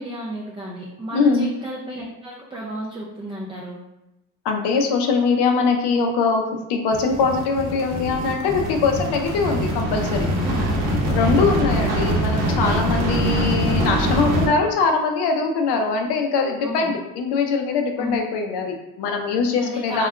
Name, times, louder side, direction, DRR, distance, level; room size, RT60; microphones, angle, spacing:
voice 1, 0.0-3.8 10.4-10.8 11.2-11.5 16.6-16.9 18.0-18.2 19.6-20.1, right 1 dB, 10° right, -5 dB, 0.3 m, -32 dB
voice 2, 1.1-1.5 4.4-10.3 11.0-20.1, left 4 dB, 55° left, 3 dB, 0.6 m, -22 dB
sound 1, 6.9-14.5, right 1 dB, 60° right, 0.9 m, -23 dB
3.5 x 2.2 x 2.2 m, 0.94 s
hypercardioid pair, 60°, 49 cm